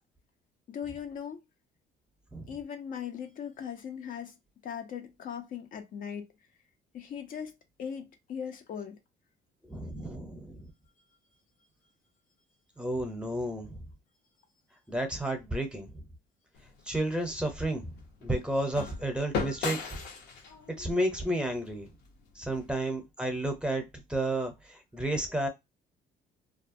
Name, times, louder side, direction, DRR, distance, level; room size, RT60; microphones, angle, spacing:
voice 1, 0.7-1.4 2.5-4.4 4.6-6.3 6.9-9.0 22.5-22.6, left 8 dB, 55° left, 0.5 m, -39 dB
voice 2, 9.7-10.7 12.8-13.8 14.9-15.9 16.9-17.9 18.2-20.0 20.8-21.9 22.4-25.5, right 1 dB, 5° right, 0.7 m, -32 dB
sound 1, 16.5-22.7, left 5 dB, 85° left, 0.8 m, -39 dB
2.3 x 2.1 x 2.5 m
cardioid pair, 110°, 17 cm